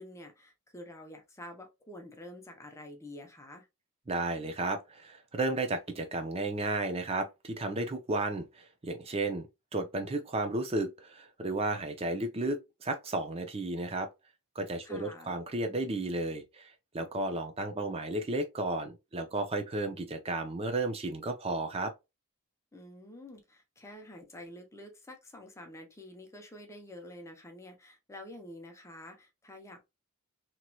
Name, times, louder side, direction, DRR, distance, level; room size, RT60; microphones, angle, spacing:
voice 1, 0.0-3.7 14.8-15.4 22.7-29.8, left 1 dB, 15° left, 0.6 m, -48 dB
voice 2, 4.1-9.5 9.7-14.1 14.6-21.9, right 2 dB, 25° right, 0.6 m, -33 dB
3.0 x 2.8 x 2.3 m
head